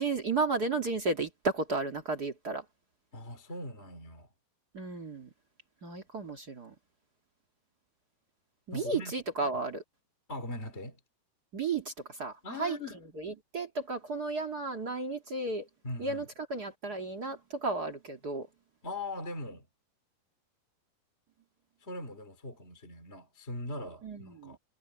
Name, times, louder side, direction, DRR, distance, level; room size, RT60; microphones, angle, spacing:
voice 1, 0.0-2.6 4.7-5.3 5.8-6.7 8.7-9.8 11.5-12.8 13.2-15.7 16.0-18.5 24.0-24.6, right 3 dB, 40° right, 1.4 m, -33 dB
voice 2, 3.1-4.3 8.7-9.1 9.5-9.6 10.3-11.0 12.4-13.0 15.8-16.3 18.8-19.7 21.8-24.6, left 1 dB, 20° left, 2.7 m, -40 dB
omnidirectional pair, 4.6 m